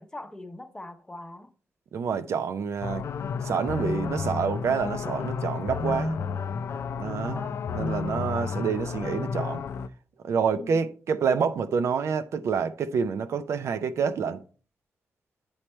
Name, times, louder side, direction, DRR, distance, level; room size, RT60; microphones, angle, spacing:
voice 1, 0.0-1.5 7.2-7.7 10.5-10.8, left 1 dB, 15° left, 0.6 m, -41 dB
voice 2, 1.9-3.1 3.4-6.2 7.0-7.5 7.7-9.6 10.2-14.4, right 6 dB, 85° right, 0.5 m, -27 dB
sound 1, 2.8-9.9, left 6 dB, 70° left, 0.4 m, -31 dB
8.6 x 3.2 x 4.2 m
wide cardioid pair, 150°, 5 cm